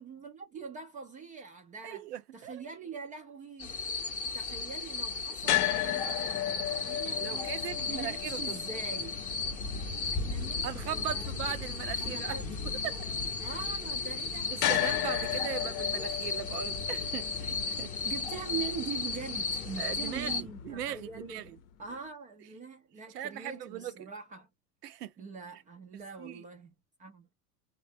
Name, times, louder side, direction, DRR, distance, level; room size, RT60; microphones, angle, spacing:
voice 1, 0.0-2.1 2.3-3.8 4.2-9.2 10.1-11.3 12.0-12.5 13.4-14.5 15.2-15.6 18.0-21.5 21.8-24.5 24.9-26.7 27.0-27.3, right 6 dB, 20° right, 0.3 m, -43 dB
voice 2, 1.8-2.6 7.2-8.4 10.6-12.4 12.8-13.0 13.4-13.5 14.5-17.9 19.8-21.6 23.1-24.1 24.8-25.1 25.9-26.4, right 11 dB, 80° right, 0.7 m, -39 dB
sound 1, 3.6-20.4, left 4 dB, 15° left, 0.7 m, -35 dB
sound 2, 5.4-21.6, left 13 dB, 55° left, 0.7 m, -37 dB
3.2 x 2.3 x 2.6 m
hypercardioid pair, 95°, 47 cm